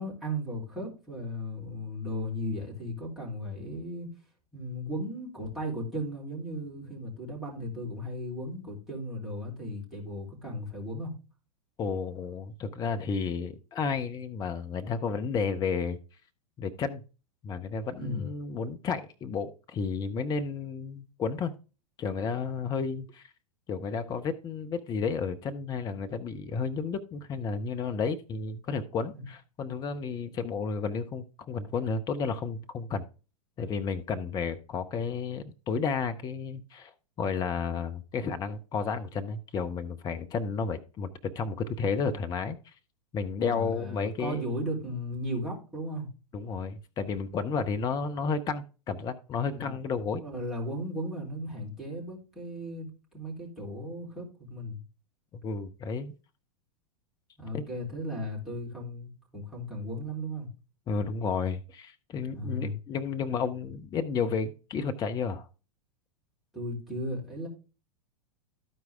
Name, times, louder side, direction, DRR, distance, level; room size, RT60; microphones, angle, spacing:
voice 1, 0.0-4.1 4.5-11.1 18.0-18.3 29.1-29.2 43.4-46.1 49.5-49.8 50.2-54.8 57.4-60.5 62.3-62.7 66.5-67.5, equal, ahead, 3.8 m, -36 dB
voice 2, 11.8-16.0 16.6-17.0 17.4-21.5 22.0-23.3 23.7-33.0 33.6-36.9 37.2-42.6 43.1-44.5 46.3-50.2 55.4-56.1 57.5-57.6 60.9-65.5, left 5 dB, 20° left, 0.6 m, -32 dB
13.0 x 4.7 x 3.5 m
figure-of-eight pair, 100°, 20 cm